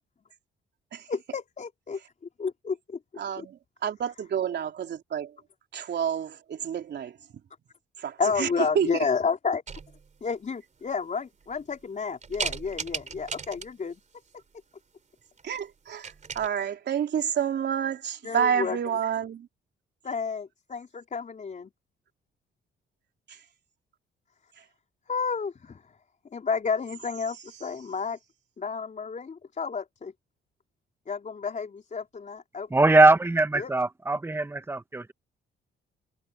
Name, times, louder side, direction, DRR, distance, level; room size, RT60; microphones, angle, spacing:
voice 1, 1.1-2.0 2.4-3.0 3.4-3.5 8.2-9.6 10.2-14.0 18.2-18.8 20.0-21.7 25.1-25.8 26.3-28.2 28.6-30.1 31.1-32.7 33.5-33.7, left 5 dB, 40° left, 4.4 m, -31 dB
voice 2, 3.2-5.3 5.7-7.2 8.0-8.5 8.8-9.1 15.4-19.5 23.3-23.4, right 8 dB, 60° right, 3.6 m, -29 dB
sound 1, 9.7-10.2 10.9-11.0 11.4-11.8 12.2-13.9 15.4-15.6 15.9-16.5, right 5 dB, 40° right, 3.4 m, -36 dB
voice 3, 32.7-35.1, right 2 dB, 10° right, 1.2 m, -21 dB
cardioid pair, 90°, 20 cm